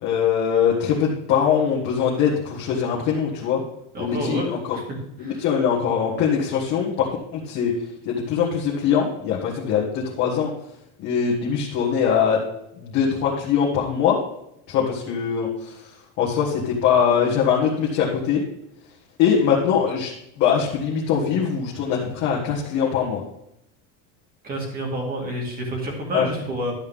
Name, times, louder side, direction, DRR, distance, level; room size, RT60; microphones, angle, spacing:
voice 1, 0.0-3.6 4.0-4.6 5.2-7.1 7.3-7.7 8.0-10.5 11.0-12.4 12.8-14.2 14.7-15.7 16.2-18.4 19.2-20.1 20.4-23.2 26.1-26.3, left 7 dB, 40° left, -4 dB, 1.7 m, -22 dB
voice 2, 3.9-4.8 5.2-5.4 24.4-26.7, right 1 dB, 20° right, 0 dB, 2.2 m, -29 dB
12.0 x 8.0 x 3.6 m, 0.81 s
cardioid pair, 180°, 43 cm